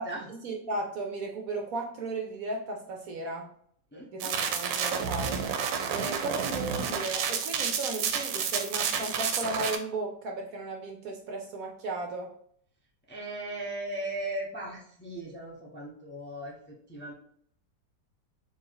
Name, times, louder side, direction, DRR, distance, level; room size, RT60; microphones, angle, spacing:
voice 1, 0.0-3.5 4.1-5.5 5.9-12.3, right 2 dB, 65° right, 2 dB, 0.9 m, -35 dB
voice 2, 3.9-4.3 13.1-17.1, right 1 dB, 10° left, -3 dB, 0.5 m, -38 dB
sound 1, 4.2-9.7, right 7 dB, 90° right, 1.3 m, -30 dB
4.0 x 2.8 x 4.7 m, 0.62 s
omnidirectional pair, 1.9 m